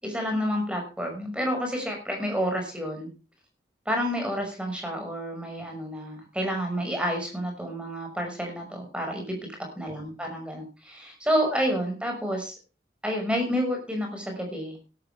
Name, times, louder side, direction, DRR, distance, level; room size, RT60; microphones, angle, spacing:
voice 1, 0.0-3.1 3.9-9.4 9.8-12.5 13.0-14.8, equal, 5° right, 3 dB, 5.7 m, -29 dB
17.0 x 13.0 x 3.5 m, 0.33 s
head